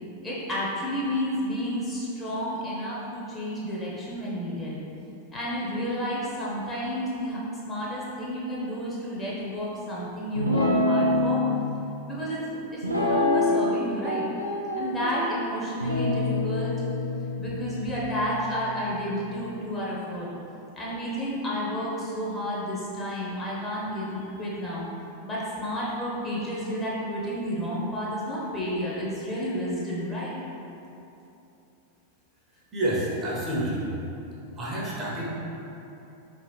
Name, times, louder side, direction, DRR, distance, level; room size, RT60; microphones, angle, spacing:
voice 1, 0.2-4.8 5.3-7.4 7.6-11.4 12.0-12.6 12.9-14.2 14.8-16.7 17.4-20.3 20.7-24.8 25.2-30.3, equal, 15° left, -7 dB, 0.9 m, -31 dB
Guitar, 10.4-11.6 12.8-13.8 14.0-15.2 15.8-19.3, left 2 dB, 90° right, 0.4 m, -26 dB
voice 2, 32.7-33.9 34.6-35.3, right 1 dB, 20° right, -6 dB, 0.9 m, -28 dB
4.3 x 3.0 x 3.2 m, 2.9 s
figure-of-eight pair, 90°, 0 cm